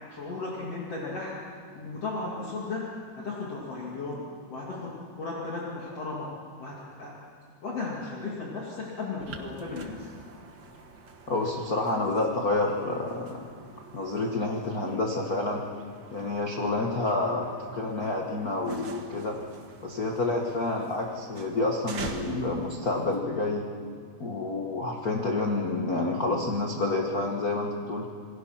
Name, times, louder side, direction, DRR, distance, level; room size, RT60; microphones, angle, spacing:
voice 1, 0.1-1.3 1.7-2.9 3.1-4.2 4.5-6.3 6.6-7.1 7.6-10.1, left 3 dB, 45° left, -4 dB, 3.2 m, -35 dB
sound 1, 9.2-23.2, right 3 dB, 45° right, 1.5 m, -46 dB
voice 2, 11.3-13.5 13.9-15.6 16.1-19.4 19.8-23.6 24.2-28.1, left 2 dB, 65° left, 0 dB, 0.8 m, -29 dB
27.5 x 21.5 x 5.9 m, 2.1 s
omnidirectional pair, 4.3 m